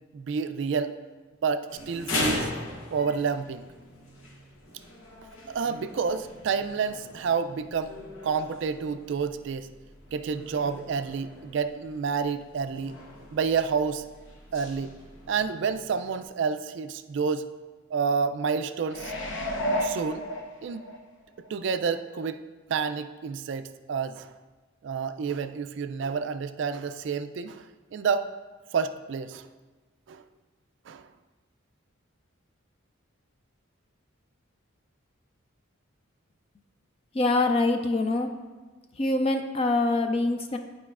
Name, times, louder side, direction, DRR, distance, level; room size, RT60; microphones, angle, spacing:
voice 1, 0.1-0.9 1.4-2.5 2.9-3.7 5.5-7.9 8.2-9.7 10.1-13.0 13.3-14.0 14.5-14.9 15.3-17.4 17.9-19.1 19.8-20.2 20.6-20.8 21.5-22.4 22.7-24.3 24.8-27.6 27.9-28.3 28.7-29.5 30.1-30.2 30.9-31.1, right 5 dB, 60° right, 10 dB, 0.3 m, -29 dB
sound 1, 1.7-16.3, left 1 dB, 85° left, 1.0 m, -39 dB
sound 2, 18.9-21.0 21.5-21.6, equal, 65° left, 0.7 m, -31 dB
voice 2, 37.1-38.3 39.0-40.6, left 2 dB, 30° left, 6 dB, 0.4 m, -24 dB
10.5 x 4.8 x 2.4 m, 1.3 s
head